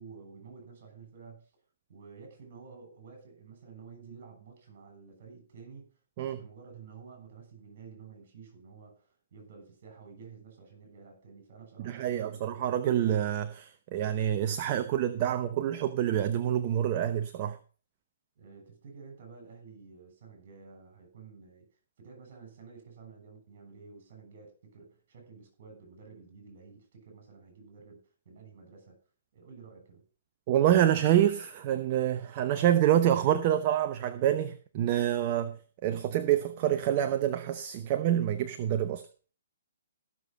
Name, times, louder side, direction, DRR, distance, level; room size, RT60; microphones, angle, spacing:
voice 1, 0.0-1.5 1.9-12.7 18.4-21.7 22.0-29.0 29.3-30.0, right 5 dB, 50° right, 7.1 m, -51 dB
voice 2, 11.8-17.6 30.5-35.6 35.8-39.0, right 11 dB, 35° right, 0.9 m, -27 dB
15.0 x 7.0 x 5.3 m
hypercardioid pair, 140°, 0 cm